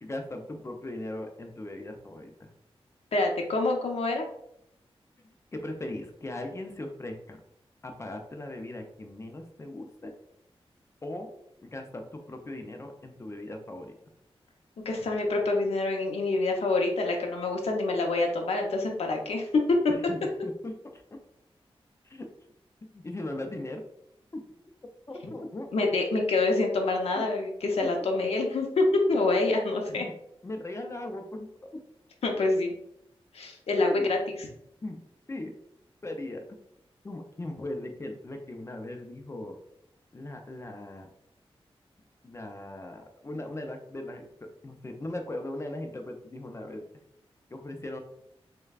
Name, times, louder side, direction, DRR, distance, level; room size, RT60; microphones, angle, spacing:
voice 1, 0.0-2.5 5.5-7.4 7.8-10.1 11.0-11.3 11.6-14.0 19.9-21.0 22.0-22.3 22.9-23.8 25.1-25.7 29.9-30.1 30.4-31.8 33.8-34.1 34.8-35.0 35.3-35.6 36.0-36.6 37.0-39.6 40.1-41.1 42.2-44.2 44.6-46.8 47.5-48.0, left 1 dB, 30° left, 4 dB, 0.5 m, -38 dB
voice 2, 3.1-4.3 14.8-19.8 25.7-30.0 32.2-32.7 33.3-34.5, left 2 dB, 85° left, 1 dB, 0.8 m, -26 dB
6.4 x 2.2 x 2.4 m, 0.73 s
wide cardioid pair, 120°, 10 cm